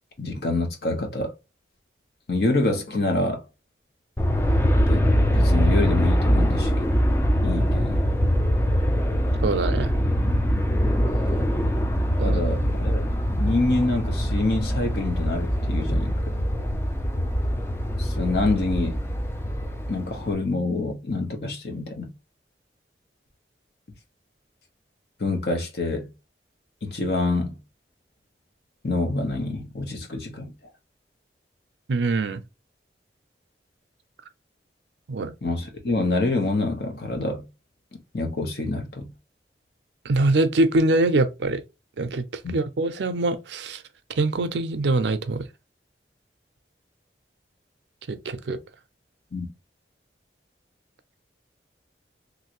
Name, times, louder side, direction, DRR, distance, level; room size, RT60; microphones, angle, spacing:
voice 1, 0.2-1.3 2.3-3.4 4.9-6.9 7.4-8.1 12.2-16.4 18.0-19.0 19.9-22.1 25.2-26.1 26.8-27.6 28.8-30.5 35.4-37.5 38.1-39.1 42.4-42.5 49.3-49.5, left 2 dB, 60° left, 0.9 m, -26 dB
Aircraft, 4.2-20.3, equal, 15° left, 0.3 m, -23 dB
voice 2, 9.4-9.9 12.2-12.4 31.9-32.4 35.1-35.3 40.0-41.6 42.0-43.8 44.2-45.5 48.1-48.6, right 2 dB, 75° right, 0.5 m, -23 dB
3.1 x 2.6 x 2.9 m
head